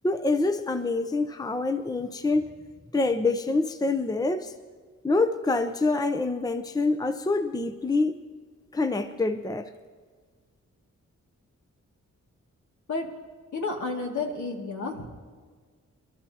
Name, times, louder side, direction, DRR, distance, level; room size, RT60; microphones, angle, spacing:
voice 1, 0.0-2.5 2.9-4.5 5.0-8.2 8.7-9.7, left 3 dB, 10° left, 9 dB, 0.7 m, -26 dB
voice 2, 13.5-15.1, left 3 dB, 70° left, 0 dB, 2.4 m, -31 dB
27.5 x 12.5 x 2.9 m, 1.5 s
cardioid pair, 65°, 31 cm